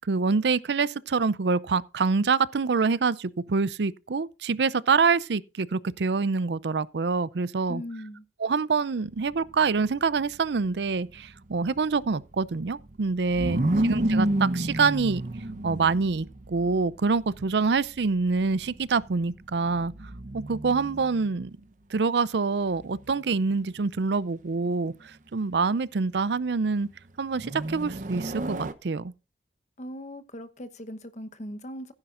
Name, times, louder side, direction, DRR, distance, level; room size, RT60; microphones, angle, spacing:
voice 1, 0.0-7.8 8.4-13.6 13.9-15.2 15.6-19.9 20.3-21.5 21.9-26.9 27.2-29.1, right 4 dB, 75° right, 0.5 m, -26 dB
voice 2, 7.7-8.2 13.4-13.9 29.8-31.9, equal, 40° left, 1.0 m, -39 dB
sound 1, 9.1-21.5 22.7-23.5 27.4-28.7, right 1 dB, 45° right, 0.8 m, -31 dB
15.5 x 9.8 x 2.5 m
head